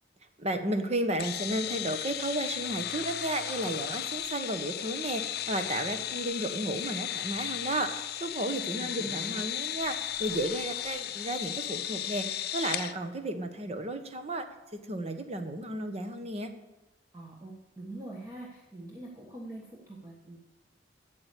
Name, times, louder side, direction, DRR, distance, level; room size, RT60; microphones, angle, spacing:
voice 1, 0.4-14.5 14.8-16.5, right 1 dB, 35° right, 7 dB, 1.1 m, -33 dB
sound 1, 1.2-12.9, left 11 dB, 60° left, 0.6 m, -35 dB
voice 2, 8.8-9.4 17.1-20.4, right 2 dB, 20° right, -2 dB, 1.4 m, -44 dB
8.7 x 7.5 x 8.3 m, 1.1 s
head